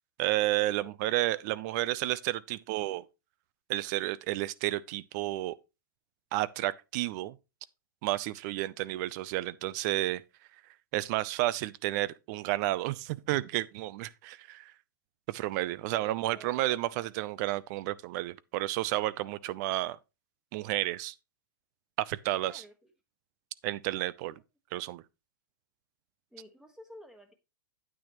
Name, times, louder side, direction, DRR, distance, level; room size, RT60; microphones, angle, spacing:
voice 1, 0.2-3.0 3.7-5.6 6.3-7.4 8.0-10.2 10.9-14.7 15.3-20.0 20.5-21.1 22.0-22.6 23.6-24.3 24.7-25.0, right 16 dB, 50° right, 0.6 m, -31 dB
voice 2, 0.8-1.1 1.5-1.9 8.6-8.8 15.9-17.2 22.4-22.9 24.2-24.3 26.3-27.3, left 1 dB, 5° right, 1.4 m, -53 dB
9.3 x 8.4 x 3.0 m
hypercardioid pair, 120°, 12 cm